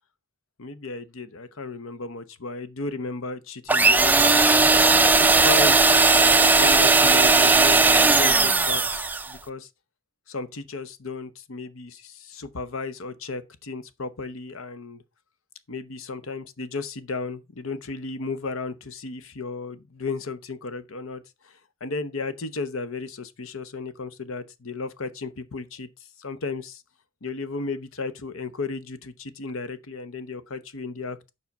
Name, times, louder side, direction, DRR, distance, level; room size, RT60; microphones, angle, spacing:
voice 1, 0.6-5.8 6.4-9.0 9.3-9.7 10.3-15.0 15.7-21.5 21.8-25.9 26.2-26.8 27.2-31.2, left 3 dB, 75° left, 0.8 m, -34 dB
sound 1, 3.7-9.3, right 3 dB, 10° right, 0.4 m, -17 dB
7.2 x 4.9 x 5.2 m
head